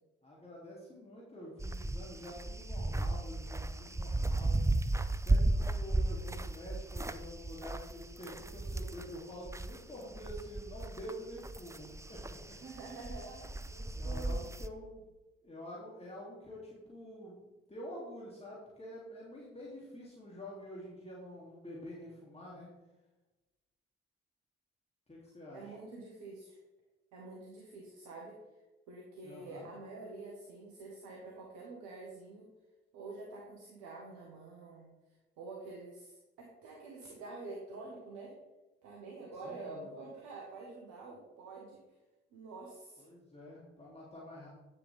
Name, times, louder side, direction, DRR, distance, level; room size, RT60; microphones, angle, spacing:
voice 1, 0.2-4.6 5.1-12.6 13.0-13.2 13.9-15.0 15.4-22.7 25.1-25.8 29.2-29.7 39.4-40.0 43.0-44.5, equal, 20° left, -5 dB, 2.8 m, -48 dB
sound 1, 1.6-9.8 10.1-14.7, right 2 dB, 10° right, 0.5 m, -35 dB
voice 2, 12.5-14.4 25.5-26.6 27.1-28.4 28.9-32.5 32.9-34.9 35.4-38.3 38.8-41.8 42.3-43.1, right 3 dB, 65° right, -2 dB, 1.6 m, -47 dB
9.9 x 7.1 x 3.5 m, 1.1 s
figure-of-eight pair, 40°, 31 cm